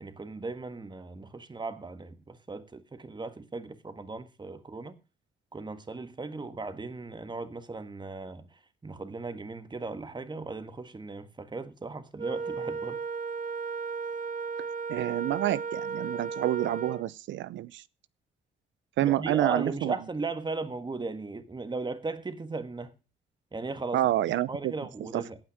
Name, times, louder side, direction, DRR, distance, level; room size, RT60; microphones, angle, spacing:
voice 1, 0.0-5.0 5.5-13.0 19.0-22.9 23.5-24.1 24.5-25.4, right 3 dB, 25° right, 1.7 m, -37 dB
Wind instrument woodwind instrument, 12.2-17.1, right 5 dB, 40° right, 2.1 m, -35 dB
voice 2, 14.9-17.8 19.0-19.9 23.9-24.7 25.1-25.2, right 14 dB, 80° right, 0.6 m, -28 dB
17.5 x 5.9 x 6.4 m
cardioid pair, 80°, 19 cm